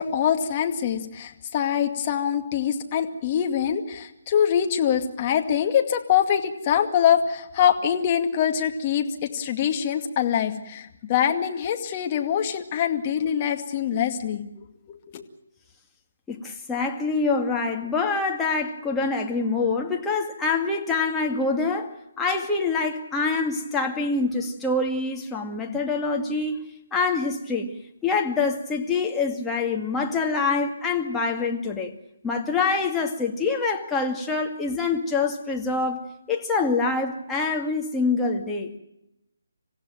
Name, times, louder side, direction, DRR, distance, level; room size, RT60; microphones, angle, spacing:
voice 1, 0.0-14.4 15.1-15.2, left 9 dB, 30° left, 5 dB, 2.3 m, -24 dB
voice 2, 16.3-26.6 26.9-27.7 28.0-31.9 32.2-38.7, left 4 dB, 10° left, 1 dB, 2.2 m, -25 dB
27.0 x 16.0 x 9.1 m, 0.84 s
figure-of-eight pair, 145°, 0 cm